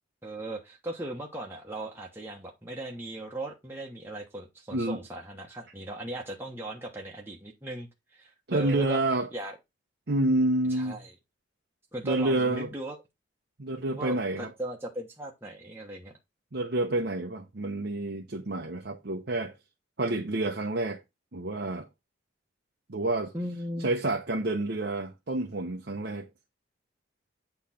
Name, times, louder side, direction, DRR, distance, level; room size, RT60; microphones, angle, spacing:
voice 1, 0.2-9.0 9.3-9.6 10.7-11.1 11.9-13.0 14.0-16.1 23.3-23.9, right 1 dB, 10° right, 1.1 m, -38 dB
voice 2, 4.7-5.0 8.5-9.3 10.1-11.0 12.0-12.7 13.6-14.5 16.5-19.5 20.0-21.0 21.3-21.9 22.9-23.3 23.8-26.3, right 2 dB, 60° right, 0.9 m, -28 dB
8.6 x 3.3 x 5.7 m
head